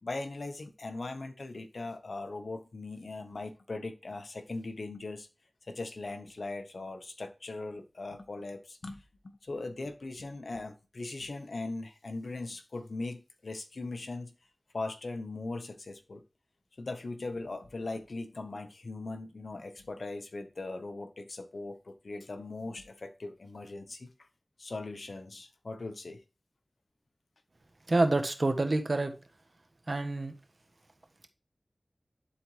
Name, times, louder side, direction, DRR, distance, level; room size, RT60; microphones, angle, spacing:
voice 1, 0.0-5.3 5.6-14.3 14.7-16.2 16.8-24.1 24.6-26.2, left 2 dB, 80° left, 1.0 m, -39 dB
voice 2, 27.9-29.1 29.9-30.3, right 2 dB, 60° right, 1.2 m, -27 dB
11.5 x 4.1 x 3.1 m
wide cardioid pair, 45°, 0 cm